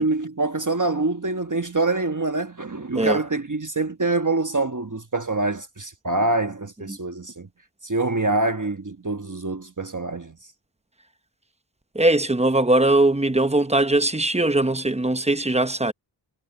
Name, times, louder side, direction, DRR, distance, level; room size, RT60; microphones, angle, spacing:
voice 1, 0.0-7.5 7.8-10.4, right 2 dB, 40° right, 1.3 m, -25 dB
voice 2, 11.9-15.9, right 2 dB, 15° right, 0.8 m, -20 dB
wide cardioid pair, 45°, 46 cm